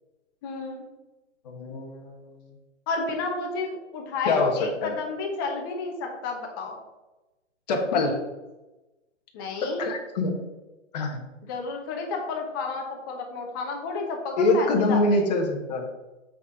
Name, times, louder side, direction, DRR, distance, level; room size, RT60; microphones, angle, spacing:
voice 1, 0.4-0.8 2.9-6.7 9.3-9.8 11.5-15.2, left 3 dB, 20° left, 1 dB, 0.9 m, -31 dB
voice 2, 1.4-2.5 4.2-4.9 7.7-8.2 9.6-10.4 10.9-11.2 14.4-15.9, left 2 dB, 35° left, 3 dB, 1.2 m, -25 dB
8.3 x 4.2 x 5.0 m, 1.1 s
hypercardioid pair, 165°, 37 cm